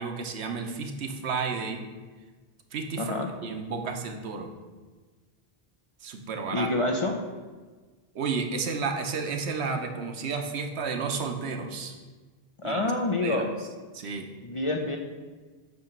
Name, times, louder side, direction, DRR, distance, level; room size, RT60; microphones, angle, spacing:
voice 1, 0.0-1.8 2.7-3.1 3.4-4.5 6.0-6.7 8.1-11.9 12.6-12.8 13.2-13.5 13.9-14.3, right 4 dB, 85° right, 4 dB, 1.0 m, -32 dB
voice 2, 3.0-3.3 6.5-7.2 12.6-13.5 14.4-15.0, left 2 dB, 40° left, 1 dB, 0.5 m, -27 dB
7.9 x 2.9 x 5.8 m, 1.4 s
omnidirectional pair, 1.1 m